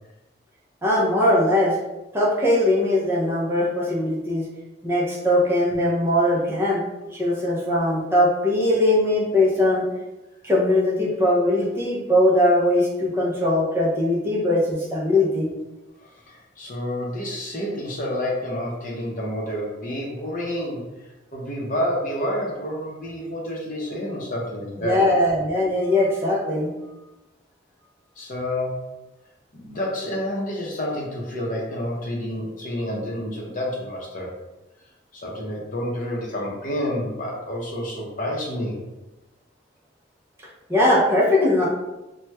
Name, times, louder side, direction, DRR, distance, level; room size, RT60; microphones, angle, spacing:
voice 1, 0.8-1.8 2.1-4.4 4.8-6.8 7.1-9.9 10.4-15.5 24.8-26.7 40.7-41.7, left 1 dB, 15° right, -5 dB, 0.5 m, -20 dB
voice 2, 16.0-25.0 28.2-28.9 29.5-34.3 35.1-38.9, left 1 dB, 45° left, -2 dB, 0.7 m, -29 dB
2.9 x 2.2 x 3.2 m, 1.0 s
head